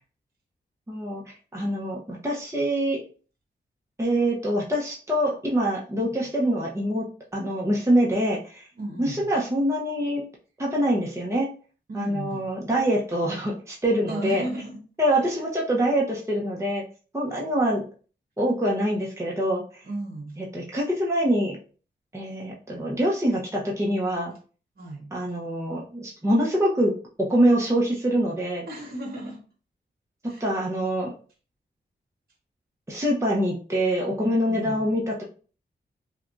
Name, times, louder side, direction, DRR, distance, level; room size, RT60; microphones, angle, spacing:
voice 1, 0.9-3.0 4.0-7.0 7.3-8.7 9.0-10.2 10.6-11.5 11.9-14.4 15.0-16.8 17.1-17.8 18.4-19.8 20.4-21.6 22.1-24.3 25.1-26.9 27.2-28.6 30.4-31.1 32.9-35.2, equal, 15° right, -3 dB, 0.9 m, -25 dB
voice 2, 8.7-9.3 11.9-12.5 13.2-13.3 14.1-14.8 15.2-15.4 19.8-20.4 24.8-25.1 28.7-29.4 30.2-30.6 34.5-34.9, right 1 dB, 55° right, 2 dB, 1.2 m, -35 dB
5.6 x 2.4 x 2.6 m, 0.39 s
cardioid pair, 60°, 19 cm